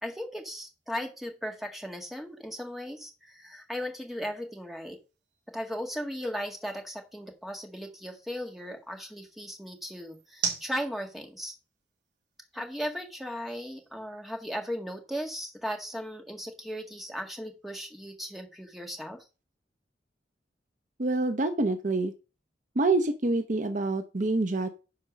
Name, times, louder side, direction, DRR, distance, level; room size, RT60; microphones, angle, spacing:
voice 1, 0.0-5.0 5.5-11.5 12.5-19.2, equal, ahead, 3 dB, 1.7 m, -37 dB
sound 1, 0.6-14.9, right 6 dB, 60° right, 3.6 m, -45 dB
voice 2, 21.0-22.1 22.8-24.7, right 2 dB, 45° right, 8 dB, 0.8 m, -26 dB
10.5 x 4.3 x 6.2 m, 0.32 s
head